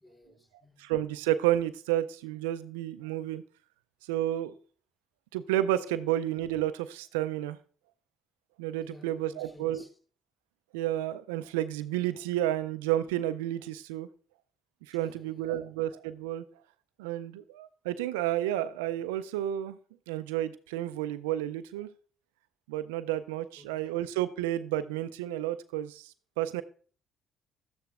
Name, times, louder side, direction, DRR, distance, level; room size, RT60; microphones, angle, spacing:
voice 1, 0.0-0.9 8.8-9.9 14.9-15.6 23.6-23.9, left 1 dB, 20° left, 3.2 m, -56 dB
voice 2, 0.8-3.4 4.1-4.5 5.3-7.6 8.6-9.8 10.7-14.1 14.9-16.4 17.0-19.8 20.1-21.9 22.7-26.6, right 13 dB, 85° right, 0.3 m, -31 dB
12.5 x 9.3 x 2.4 m
hypercardioid pair, 50°, 0 cm